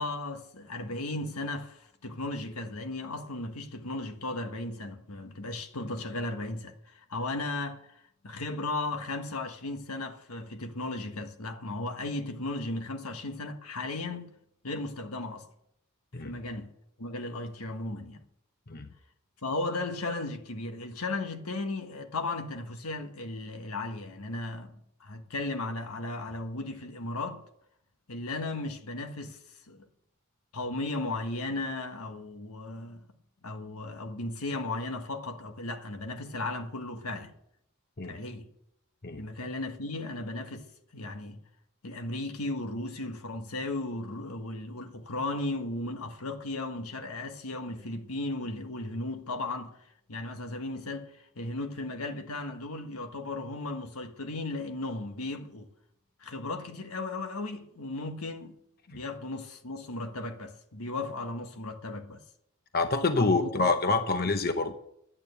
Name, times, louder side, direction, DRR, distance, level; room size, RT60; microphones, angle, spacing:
voice 1, 0.0-14.3 14.6-15.5 16.2-16.7 17.0-18.2 19.4-27.4 28.1-29.4 29.7-29.9 30.5-33.1 33.4-37.3 38.0-38.5 39.2-40.6 40.9-41.4 41.8-49.8 50.1-55.7 56.2-58.6 58.9-62.2 63.1-63.7 64.2-64.3, left 2 dB, 85° left, 1.4 m, -36 dB
voice 2, 62.7-64.7, left 3 dB, 45° left, 0.9 m, -27 dB
11.5 x 8.8 x 8.1 m
head